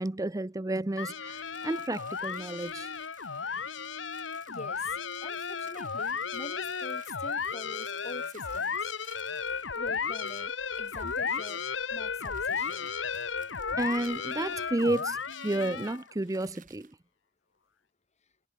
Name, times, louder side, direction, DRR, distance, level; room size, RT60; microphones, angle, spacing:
voice 1, 0.0-2.9 13.8-16.9, right 2 dB, 20° right, 0.6 m, -31 dB
sound 1, 1.0-16.1, left 6 dB, 70° left, 1.4 m, -34 dB
sound 2, 1.2-17.0, right 8 dB, 45° right, 6.0 m, -59 dB
voice 2, 4.5-4.9 5.2-8.9 9.7-11.6 11.9-12.9, left 2 dB, 35° left, 2.3 m, -44 dB
head